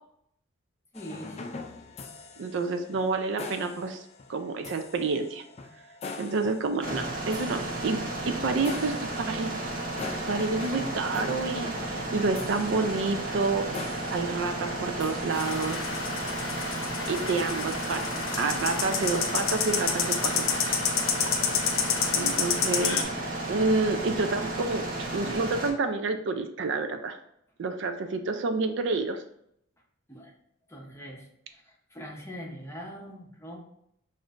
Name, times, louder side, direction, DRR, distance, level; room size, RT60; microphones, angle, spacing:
sound 1, 0.9-16.1, left 3 dB, 30° left, 0.3 m, -43 dB
voice 1, 0.9-1.6 30.1-30.3 30.7-33.6, equal, 15° left, -1 dB, 0.7 m, -43 dB
voice 2, 2.4-4.0 4.3-5.4 6.2-9.5 10.3-15.8 16.5-16.6 17.1-20.8 22.1-23.1 23.5-24.8 25.1-27.2 27.6-29.2, right 3 dB, 60° right, 7 dB, 0.4 m, -29 dB
sound 2, 6.8-25.7, right 2 dB, 45° right, 0.8 m, -33 dB
sound 3, 15.3-23.0, left 6 dB, 75° left, 0.6 m, -29 dB
6.1 x 2.5 x 2.5 m, 0.73 s
head